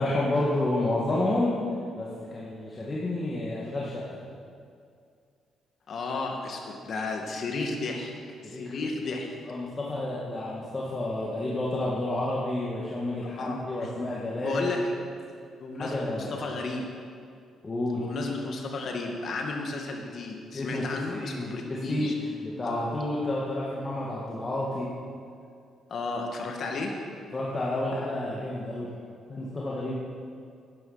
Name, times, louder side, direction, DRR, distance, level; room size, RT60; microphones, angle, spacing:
voice 1, 0.0-1.6 1.9-4.2 8.4-14.6 15.8-16.3 17.6-18.1 20.5-24.9 27.3-28.9 29.3-30.0, left 1 dB, 30° left, -5 dB, 2.0 m, -30 dB
voice 2, 5.9-8.1 8.4-9.3 13.4-13.9 14.4-14.8 15.6-16.9 18.0-22.1 22.6-22.9 25.9-26.9, left 3 dB, 55° left, 1 dB, 2.1 m, -33 dB
12.0 x 10.0 x 5.8 m, 2.3 s
cardioid pair, 90°, 0 cm